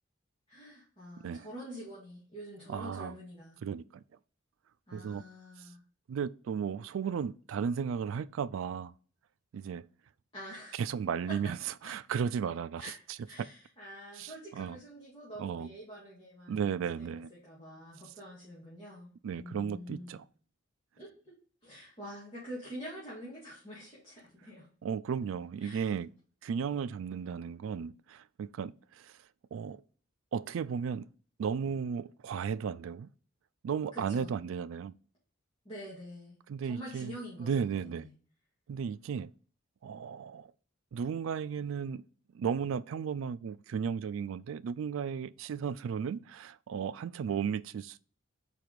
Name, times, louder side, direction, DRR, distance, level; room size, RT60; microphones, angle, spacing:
voice 1, 0.5-3.6 4.9-5.8 10.3-10.8 11.3-11.4 11.8-12.0 12.8-12.9 13.2-20.2 21.0-21.3 21.6-24.7 25.6-25.9 33.9-34.4 35.6-38.2, equal, 25° left, 2.1 m, -46 dB
voice 2, 2.7-3.1 3.6-4.0 4.9-5.2 6.1-8.9 9.5-9.8 10.8-11.6 11.8-12.9 14.2-14.8 15.4-15.7 16.5-17.3 19.2-20.2 24.8-26.1 26.4-28.7 29.5-29.8 30.3-31.1 31.4-33.1 33.6-34.9 36.5-37.1 37.4-38.1 38.7-39.3 39.8-40.5 40.9-42.0 42.3-48.0, right 7 dB, 80° right, 0.3 m, -34 dB
4.7 x 4.6 x 5.1 m
head